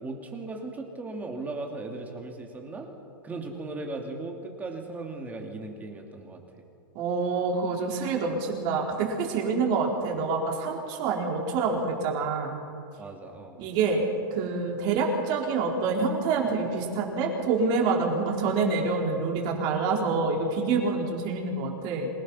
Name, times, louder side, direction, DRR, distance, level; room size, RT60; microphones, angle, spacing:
voice 1, 0.0-2.9 3.2-6.4 13.0-13.6, right 2 dB, 15° right, 2 dB, 2.8 m, -37 dB
voice 2, 6.9-12.6 13.6-14.0 14.3-22.1, right 4 dB, 40° right, 0 dB, 4.6 m, -27 dB
27.5 x 17.5 x 5.7 m, 2.5 s
hypercardioid pair, 140°, 12 cm